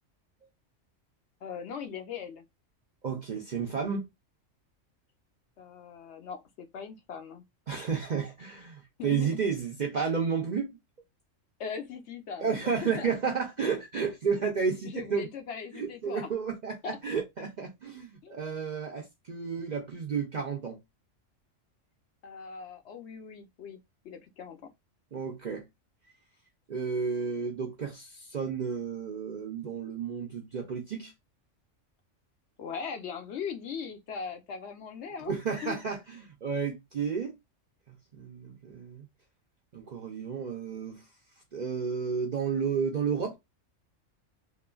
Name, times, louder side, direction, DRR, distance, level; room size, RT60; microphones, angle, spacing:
voice 1, 1.4-2.4 5.6-7.4 9.0-9.5 11.6-13.1 14.8-16.3 16.8-17.0 18.2-18.4 22.2-23.8 24.0-24.7 32.6-35.3 35.6-35.8, left 6 dB, 65° left, 0.9 m, -39 dB
voice 2, 3.0-4.1 7.7-10.8 12.4-15.3 15.7-20.8 25.1-25.7 26.7-31.1 35.2-37.3 37.9-39.1 39.7-41.0 41.5-43.3, right 6 dB, 55° right, 0.5 m, -32 dB
3.0 x 2.3 x 2.2 m
omnidirectional pair, 1.3 m